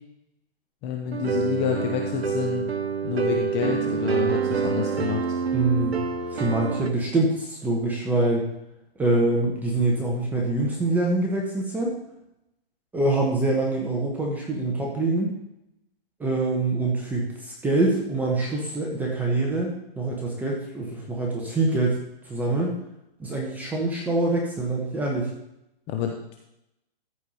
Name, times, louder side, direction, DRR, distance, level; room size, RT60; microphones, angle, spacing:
voice 1, 0.8-2.7 3.0-5.2 25.9-26.4, left 8 dB, 20° left, 2 dB, 0.7 m, -28 dB
sound 1, 1.1-6.9, right 6 dB, 85° right, 1.0 m, -27 dB
voice 2, 5.5-6.0 6.3-8.5 9.0-12.0 12.9-15.4 16.2-22.0 22.3-22.7 23.2-25.3, right 2 dB, 5° right, -2 dB, 1.3 m, -25 dB
14.0 x 4.8 x 5.6 m, 0.84 s
hypercardioid pair, 150°, 30 cm